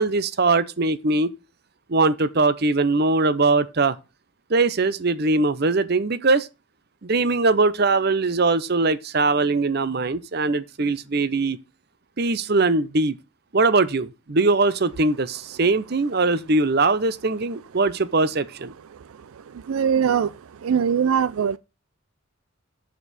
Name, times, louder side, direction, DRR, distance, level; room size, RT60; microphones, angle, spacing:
voice 1, 0.0-1.3 1.9-4.0 4.5-6.5 7.0-11.6 12.2-13.2 13.5-18.7, right 3 dB, 50° right, 0.7 m, -21 dB
voice 2, 19.4-20.3 20.6-21.6, right 7 dB, 85° right, 0.4 m, -22 dB
7.4 x 6.9 x 4.1 m
head